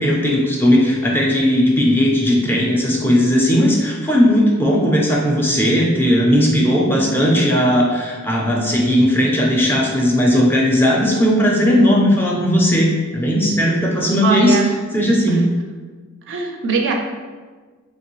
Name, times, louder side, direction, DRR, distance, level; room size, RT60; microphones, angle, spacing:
voice 1, 0.0-14.6 14.9-15.4, equal, 10° left, -1 dB, 0.4 m, -16 dB
voice 2, 14.2-14.7 15.3-15.4 16.3-16.9, right 4 dB, 60° right, 2 dB, 0.4 m, -22 dB
3.0 x 3.0 x 3.0 m, 1.4 s
head